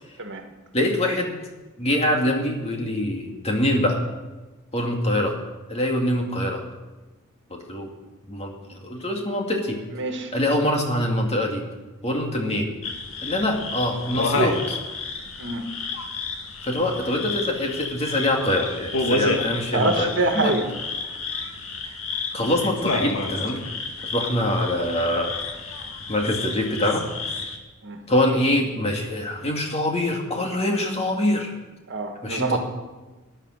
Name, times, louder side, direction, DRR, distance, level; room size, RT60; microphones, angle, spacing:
voice 1, 0.7-1.4 1.8-4.0 4.7-5.4 5.7-6.6 7.5-7.9 8.3-9.8 10.3-11.6 12.0-12.7 13.2-14.8 16.6-20.6 21.8-22.0 22.3-23.6 24.1-25.4 26.1-27.0 28.1-31.5 32.2-32.6, left 1 dB, 30° left, 1 dB, 2.4 m, -24 dB
voice 2, 9.9-10.3 15.4-15.7 19.2-19.5 19.7-20.7 27.8-28.0 31.9-32.6, right 2 dB, 60° right, 5 dB, 1.7 m, -25 dB
sound 1, 12.8-27.6, left 3 dB, 70° left, 2.0 m, -30 dB
17.5 x 10.0 x 6.6 m, 1.2 s
head